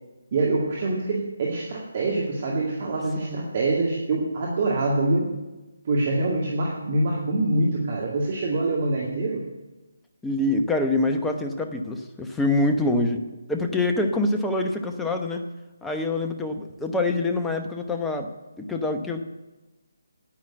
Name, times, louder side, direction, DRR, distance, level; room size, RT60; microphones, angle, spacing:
voice 1, 0.3-5.3 5.8-9.4, right 2 dB, 40° right, -3 dB, 2.2 m, -25 dB
voice 2, 3.2-3.5 10.2-13.2 13.5-15.4 15.8-18.3 18.6-19.2, left 2 dB, 5° left, 5 dB, 0.9 m, -25 dB
9.8 x 9.4 x 8.8 m, 1.1 s
figure-of-eight pair, 150°, 0 cm